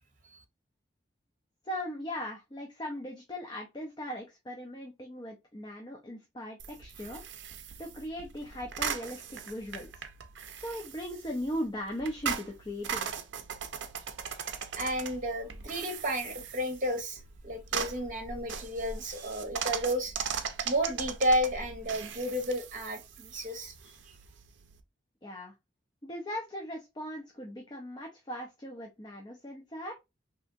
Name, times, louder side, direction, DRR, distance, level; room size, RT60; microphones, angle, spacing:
voice 1, 1.6-7.2 7.8-10.0 10.6-13.1 25.2-25.5 26.0-29.9, equal, 25° left, 0.5 m, -38 dB
sound 1, 6.6-24.8, right 7 dB, 70° right, 0.5 m, -39 dB
voice 2, 14.8-20.1 20.6-24.1, equal, 45° right, 1.0 m, -32 dB
3.3 x 2.8 x 2.5 m
head